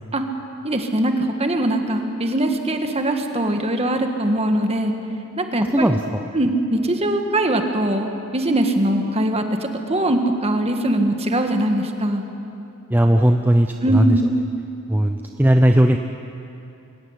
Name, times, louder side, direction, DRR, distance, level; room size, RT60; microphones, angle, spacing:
voice 1, 0.6-4.9 5.4-5.9 6.3-12.2 13.8-14.3, right 1 dB, 30° right, 5 dB, 1.7 m, -21 dB
voice 2, 5.7-6.2 12.9-14.2 14.9-16.0, right 1 dB, 10° right, 5 dB, 0.6 m, -17 dB
24.5 x 14.5 x 9.9 m, 2.8 s
head